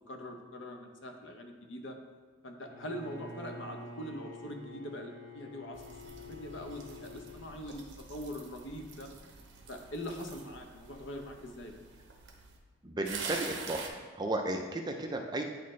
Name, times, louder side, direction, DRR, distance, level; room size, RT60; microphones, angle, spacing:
voice 1, 0.1-2.0 2.4-9.1 9.7-11.8, equal, 60° left, 4 dB, 0.7 m, -43 dB
Bowed string instrument, 2.7-7.5, left 3 dB, 80° left, 1.8 m, -48 dB
sound 1, 5.7-12.6 13.1-13.9, right 4 dB, 55° right, 0.8 m, -46 dB
voice 2, 12.8-15.4, right 2 dB, 20° right, 3 dB, 0.4 m, -34 dB
9.1 x 4.3 x 3.1 m, 1.5 s
head